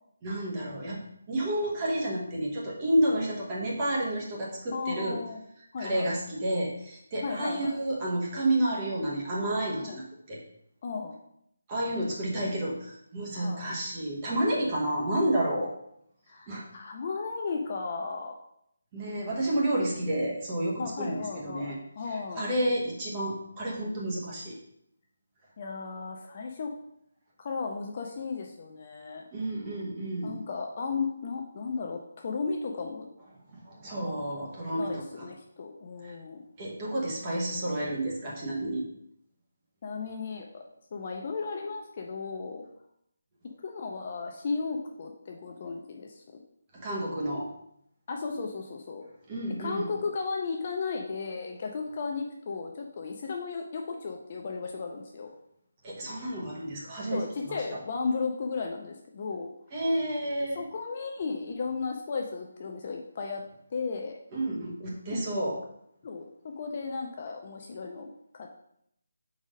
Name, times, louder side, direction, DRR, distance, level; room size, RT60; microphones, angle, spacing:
voice 1, 0.2-5.2 5.8-10.4 11.7-15.7 16.5-16.6 18.9-21.8 22.1-24.6 29.3-30.4 33.5-35.3 36.0-36.1 36.6-38.8 46.7-47.5 49.3-49.9 55.8-57.6 59.7-60.6 64.3-65.6, right 1 dB, 15° right, -4 dB, 1.0 m, -30 dB
voice 2, 4.7-5.4 5.7-6.1 7.2-7.8 9.8-10.0 10.8-11.2 13.3-13.6 16.3-18.3 20.8-22.5 25.6-26.7 27.4-29.2 30.2-33.1 34.7-36.4 39.8-40.6 40.9-42.6 43.6-46.4 48.1-49.0 49.6-55.3 57.1-59.5 60.5-63.4 63.7-64.2 65.1-65.3 66.0-68.6, left 4 dB, 30° left, 1 dB, 0.5 m, -35 dB
4.9 x 4.0 x 5.0 m, 0.75 s
hypercardioid pair, 175°, 0 cm